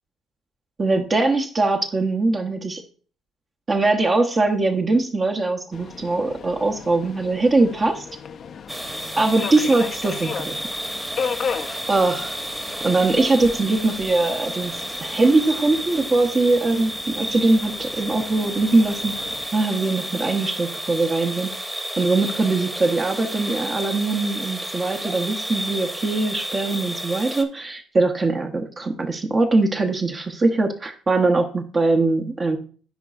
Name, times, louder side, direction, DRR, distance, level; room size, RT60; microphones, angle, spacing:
voice 1, 0.8-2.8 3.7-8.0 9.2-10.6 11.9-12.4 12.8-19.1 19.5-21.5 22.0-32.6, right 3 dB, 35° right, 3 dB, 0.8 m, -21 dB
Subway metro underground, 5.7-19.5, left 6 dB, 55° left, 0.4 m, -36 dB
sound 1, 8.7-27.4, right 1 dB, 10° right, 1.0 m, -32 dB
10.0 x 4.6 x 2.4 m, 0.41 s
supercardioid pair, 65°, 0 cm